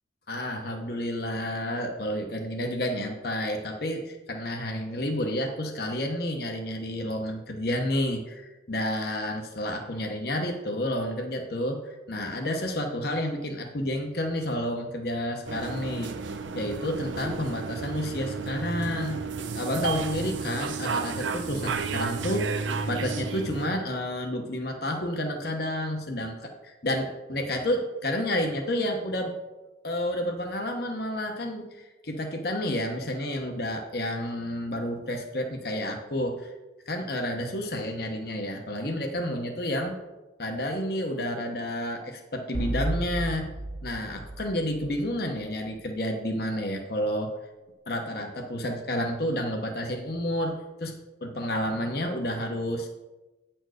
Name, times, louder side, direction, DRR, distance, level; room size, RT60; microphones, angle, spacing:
voice 1, 0.3-16.1 16.5-19.2 19.5-29.3 29.8-36.5 36.9-40.0 40.4-43.5 43.8-47.3 47.9-51.0 51.2-52.9, left 1 dB, 55° left, 3 dB, 0.9 m, -30 dB
sound 1, 15.5-23.7, right 4 dB, 80° right, 0.6 m, -32 dB
sound 2, 42.5-45.4, right 1 dB, 50° right, 1.3 m, -33 dB
9.3 x 4.5 x 6.3 m, 1.1 s
head